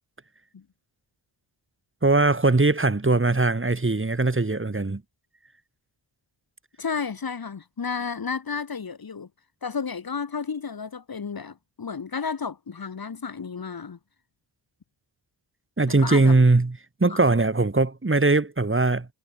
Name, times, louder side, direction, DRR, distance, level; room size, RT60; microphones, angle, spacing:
voice 1, 2.0-5.0 15.8-19.1, right 3 dB, 25° right, 2.8 m, -21 dB
voice 2, 6.8-9.3 9.6-14.0 16.0-16.4 17.1-17.2, left 5 dB, 45° left, 1.5 m, -32 dB
wide cardioid pair, 85°, 49 cm